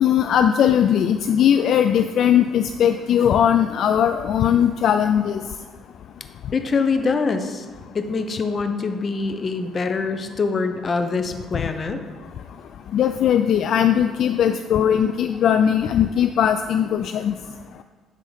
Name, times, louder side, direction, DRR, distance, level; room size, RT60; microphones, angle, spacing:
voice 1, 0.0-5.4 12.9-17.3, left 9 dB, 65° left, 8 dB, 0.3 m, -19 dB
voice 2, 6.5-7.7 7.9-12.0, left 4 dB, 40° left, 7 dB, 0.8 m, -24 dB
10.5 x 3.8 x 5.0 m, 1.4 s
supercardioid pair, 80°, 0 cm